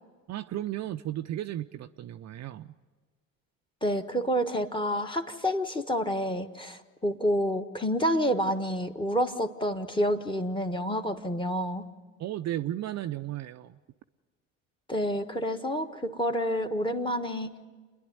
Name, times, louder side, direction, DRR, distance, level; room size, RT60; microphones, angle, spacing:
voice 1, 0.3-2.7 12.2-13.8, right 13 dB, 40° right, 8 dB, 0.6 m, -34 dB
voice 2, 3.8-11.8 14.9-17.6, equal, 10° left, 6 dB, 1.4 m, -28 dB
28.5 x 11.0 x 9.4 m, 1.4 s
hypercardioid pair, 75°, 40 cm